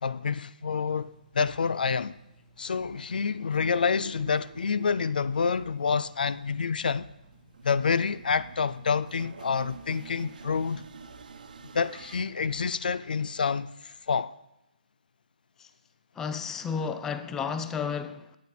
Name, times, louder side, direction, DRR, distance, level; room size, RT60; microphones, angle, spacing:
voice 1, 0.0-2.1 2.6-7.1 7.6-10.8 11.7-14.3, left 5 dB, 70° left, 0.5 m, -28 dB
sound 1, 0.9-13.3, right 1 dB, 25° left, 1.8 m, -59 dB
sound 2, 3.5-14.0, right 5 dB, 65° right, 1.0 m, -49 dB
voice 2, 16.2-18.4, left 6 dB, 10° left, 0.4 m, -32 dB
12.0 x 8.7 x 4.3 m
hypercardioid pair, 155°, 5 cm